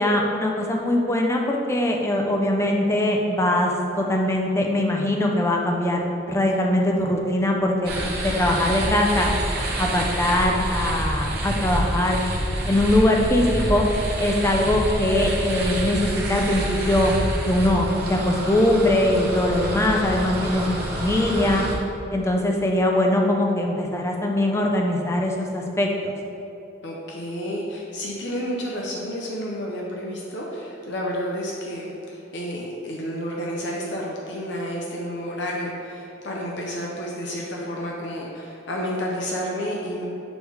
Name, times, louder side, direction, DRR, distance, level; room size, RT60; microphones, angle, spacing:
voice 1, 0.0-3.7 4.0-9.3 9.8-12.2 12.7-13.9 14.2-17.1 17.5-21.6 22.1-26.1, left 1 dB, 15° left, 1 dB, 0.5 m, -22 dB
sound 1, 7.8-21.7, right 1 dB, 50° right, 0.8 m, -27 dB
voice 2, 26.8-40.0, equal, 60° left, -3 dB, 0.7 m, -30 dB
6.2 x 3.4 x 4.8 m, 2.9 s
head